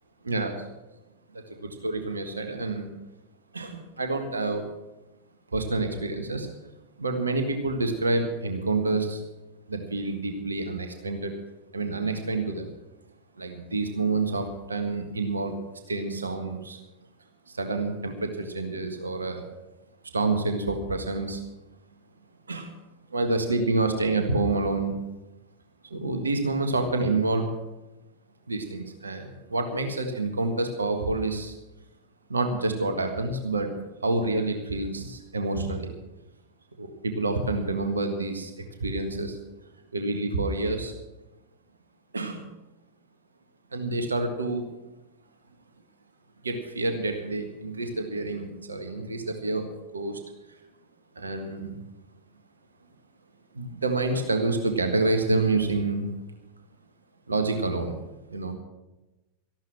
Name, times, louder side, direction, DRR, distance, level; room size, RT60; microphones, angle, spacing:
voice 1, 0.2-0.6 1.3-2.9 3.5-4.7 5.5-6.5 7.0-9.2 9.7-11.3 11.7-12.7 13.4-15.6 15.9-16.8 17.5-19.4 20.1-21.4 22.5-22.7 23.1-24.9 25.9-27.5 28.5-31.6 32.3-33.8 34.0-35.9 36.8-39.4 39.9-40.9 42.1-42.4 43.7-44.6 46.4-50.2 51.1-51.7 53.5-56.1 57.3-58.0 58.3-58.5, right 2 dB, 75° right, 6 dB, 1.6 m, -28 dB
13.5 x 12.0 x 6.1 m, 1.0 s
figure-of-eight pair, 90°, 0 cm